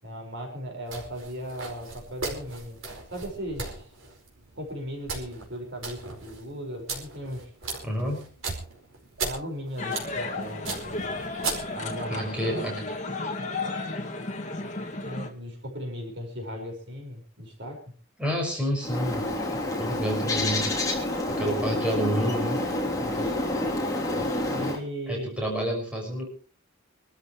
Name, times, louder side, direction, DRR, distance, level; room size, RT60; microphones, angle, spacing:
voice 1, 0.0-2.8 3.1-3.9 4.6-7.5 9.2-11.1 11.7-12.7 15.0-17.8 23.0-23.3 24.5-25.3, equal, 55° right, 3 dB, 5.2 m, -37 dB
sound 1, 0.9-12.0, right 3 dB, 75° right, 4.8 m, -38 dB
voice 2, 7.8-8.2 12.1-12.8 18.2-19.3 19.8-20.8 21.2-22.6 25.1-26.3, equal, 5° right, -1 dB, 6.0 m, -29 dB
sound 2, 9.8-15.3, left 3 dB, 35° left, 2.2 m, -33 dB
Bird, 18.8-24.8, left 1 dB, 15° left, 3.2 m, -28 dB
25.5 x 13.5 x 3.2 m, 0.38 s
head